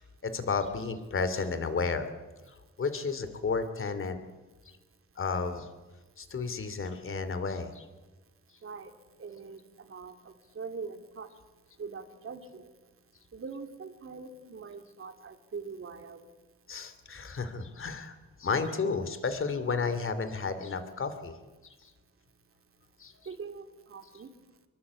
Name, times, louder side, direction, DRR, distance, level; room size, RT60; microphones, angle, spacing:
voice 1, 0.2-2.1 2.8-4.2 5.2-5.7 6.2-7.8 16.7-21.3 23.0-23.1, left 4 dB, 45° left, 11 dB, 2.7 m, -32 dB
voice 2, 9.2-11.3 11.8-12.7 13.3-16.3 23.3-24.3, right 5 dB, 50° right, 7 dB, 2.7 m, -43 dB
25.0 x 22.5 x 8.3 m, 1.2 s
wide cardioid pair, 135°, 29 cm